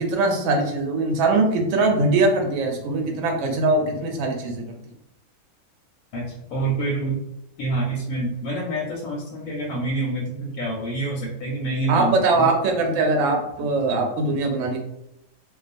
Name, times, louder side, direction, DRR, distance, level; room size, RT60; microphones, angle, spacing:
voice 1, 0.0-4.6 11.9-14.8, right 2 dB, 70° right, 2 dB, 0.8 m, -21 dB
voice 2, 6.1-7.2 7.6-12.5, right 2 dB, 90° left, -3 dB, 1.0 m, -27 dB
2.3 x 2.3 x 2.5 m, 0.82 s
omnidirectional pair, 1.5 m